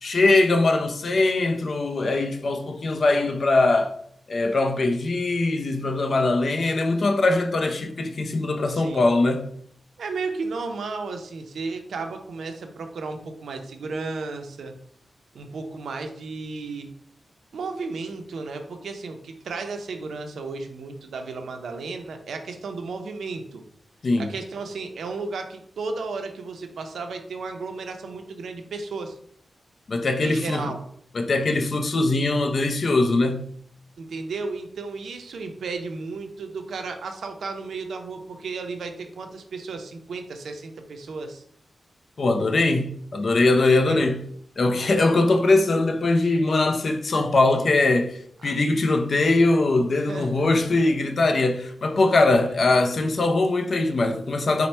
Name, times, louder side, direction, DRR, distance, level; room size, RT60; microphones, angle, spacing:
voice 1, 0.0-4.0 4.3-9.5 24.0-24.3 29.9-30.7 31.1-33.5 42.2-44.2 44.6-54.7, left 2 dB, 55° left, 0.4 m, -21 dB
voice 2, 8.7-9.0 10.0-14.7 15.3-16.9 17.5-23.6 24.2-29.2 30.2-30.8 34.0-41.4 43.5-44.1 48.4-48.6 50.1-50.5 52.3-52.4, right 4 dB, 85° right, 0.5 m, -34 dB
4.3 x 2.1 x 4.2 m
wide cardioid pair, 95°, 0 cm